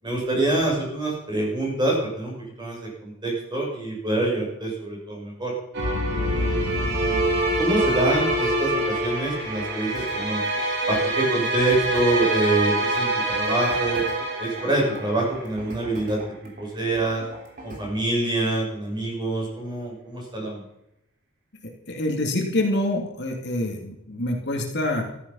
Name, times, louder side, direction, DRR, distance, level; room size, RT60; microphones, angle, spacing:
voice 1, 0.0-5.5 6.2-7.2 7.6-10.4 10.9-14.0 14.4-17.2 17.6-20.6, right 2 dB, 20° right, -2 dB, 6.5 m, -26 dB
sound 1, 5.7-15.5, right 2 dB, 60° right, 3.8 m, -25 dB
Boom, 5.8-10.1, left 2 dB, 85° left, 0.7 m, -31 dB
sound 2, 9.9-18.0, equal, 40° right, 3.4 m, -42 dB
voice 2, 21.6-25.0, left 1 dB, 55° left, 1 dB, 2.5 m, -26 dB
14.0 x 13.0 x 5.6 m, 0.82 s
head